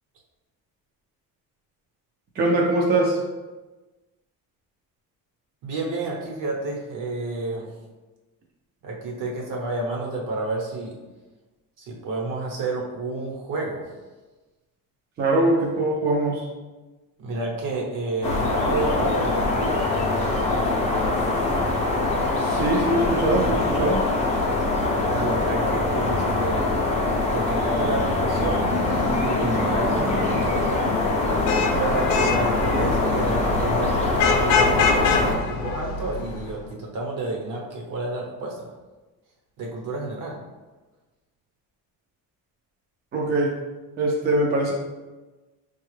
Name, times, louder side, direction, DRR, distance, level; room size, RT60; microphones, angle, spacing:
voice 1, 2.4-3.2 15.2-16.4 22.4-24.0 43.1-43.5 44.0-44.7, right 2 dB, 30° right, -2 dB, 0.5 m, -22 dB
voice 2, 5.6-7.7 8.8-11.0 11.8-13.9 17.2-19.9 25.0-26.8 27.2-30.8 31.7-38.7 39.6-40.4, right 2 dB, 65° right, -2 dB, 1.0 m, -30 dB
sound 1, 18.2-35.3, left 2 dB, 20° left, 0.5 m, -23 dB
Vehicle horn car horn honking / Traffic noise roadway noise, 31.2-36.5, left 5 dB, 70° left, 0.5 m, -25 dB
4.6 x 2.3 x 3.2 m, 1.2 s
cardioid pair, 165°, 35 cm